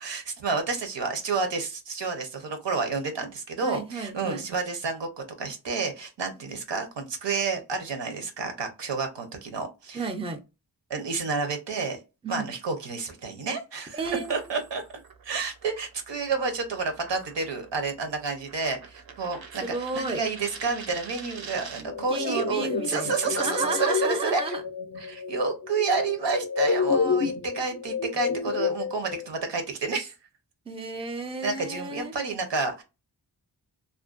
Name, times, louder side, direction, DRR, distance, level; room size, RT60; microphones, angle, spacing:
voice 1, 0.0-10.1 10.9-12.0 12.3-14.0 14.3-14.8 15.2-24.4 25.0-30.1 31.4-32.8, right 4 dB, 85° right, 0.8 m, -30 dB
voice 2, 3.6-4.5 9.9-10.4 12.2-12.5 13.9-14.4 19.6-20.2 22.1-24.6 30.7-32.2, right 3 dB, 15° right, 0.4 m, -32 dB
sound 1, 14.0-22.0, right 5 dB, 60° right, 0.6 m, -46 dB
sound 2, 21.9-29.3, left 5 dB, 45° left, 0.4 m, -29 dB
2.5 x 2.1 x 2.4 m
wide cardioid pair, 75°, 42 cm